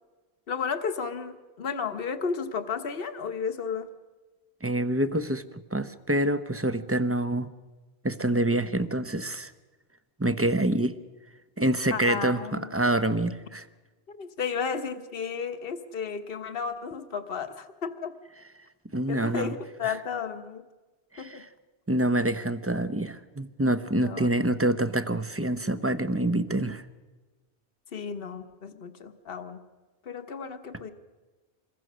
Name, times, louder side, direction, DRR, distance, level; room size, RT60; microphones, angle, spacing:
voice 1, 0.5-3.9 11.9-12.7 14.1-18.1 19.1-20.6 21.2-21.4 24.0-24.3 27.9-29.6 30.0-30.9, left 6 dB, 60° left, 8 dB, 1.4 m, -33 dB
voice 2, 4.6-5.4 5.7-7.5 8.0-9.5 10.2-10.9 11.6-13.6 18.9-19.5 19.8-20.0 21.1-21.4 21.9-26.8, right 1 dB, 15° right, 11 dB, 0.8 m, -26 dB
27.0 x 22.0 x 6.3 m, 1.3 s
omnidirectional pair, 1.1 m